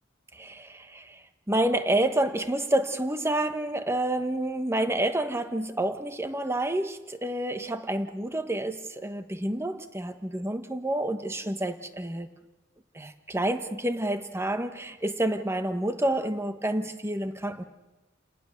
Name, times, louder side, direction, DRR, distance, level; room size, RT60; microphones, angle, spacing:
voice 1, 0.3-1.2 1.5-12.3 12.9-17.6, right 1 dB, 15° right, 8 dB, 1.2 m, -29 dB
30.0 x 18.5 x 6.6 m, 1.1 s
head